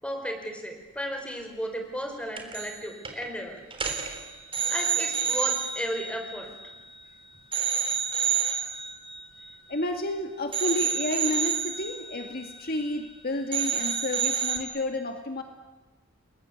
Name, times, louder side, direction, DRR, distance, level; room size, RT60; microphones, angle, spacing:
voice 1, 0.0-3.6 4.7-6.5, equal, 5° left, 4 dB, 4.7 m, -34 dB
sound 1, 2.4-2.8 3.0-3.3 3.7-7.1 7.5-10.1 10.5-13.2 13.5-14.6, right 7 dB, 25° right, 3.6 m, -30 dB
voice 2, 9.7-15.4, left 1 dB, 45° left, 5 dB, 2.2 m, -31 dB
30.0 x 21.5 x 8.3 m, 1.2 s
head